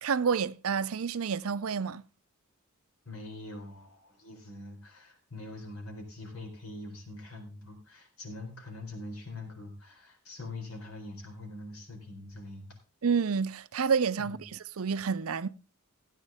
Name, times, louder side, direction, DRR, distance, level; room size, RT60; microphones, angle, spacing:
voice 1, 0.0-2.0 13.0-14.4 14.8-15.5, right 6 dB, 75° right, 0.6 m, -29 dB
voice 2, 3.0-12.8 14.2-14.5, left 2 dB, 80° left, 4.2 m, -44 dB
16.5 x 9.2 x 3.5 m
head